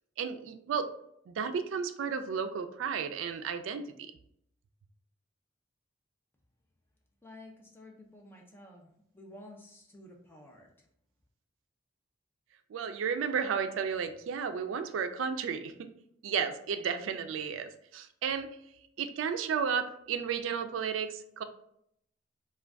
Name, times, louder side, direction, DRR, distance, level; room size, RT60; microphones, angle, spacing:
voice 1, 0.2-0.9 1.3-3.9 12.7-15.9 16.2-18.6 19.0-21.4, right 6 dB, 85° right, 9 dB, 0.3 m, -33 dB
voice 2, 7.2-10.9, left 1 dB, 10° left, 0 dB, 0.4 m, -52 dB
2.4 x 2.2 x 3.3 m, 0.72 s
head